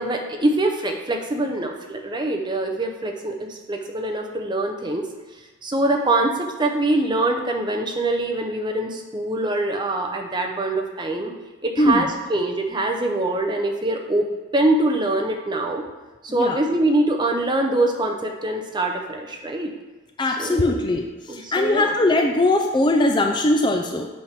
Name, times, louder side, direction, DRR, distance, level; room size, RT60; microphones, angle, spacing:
voice 1, 0.0-5.0 5.6-11.3 11.6-15.8 16.2-19.7 20.4-20.7 21.3-21.9, right 2 dB, 20° right, 3 dB, 0.7 m, -24 dB
voice 2, 11.8-12.1 16.3-16.6 20.2-24.1, left 2 dB, 20° left, 3 dB, 0.4 m, -20 dB
8.5 x 3.5 x 5.8 m, 1.2 s
head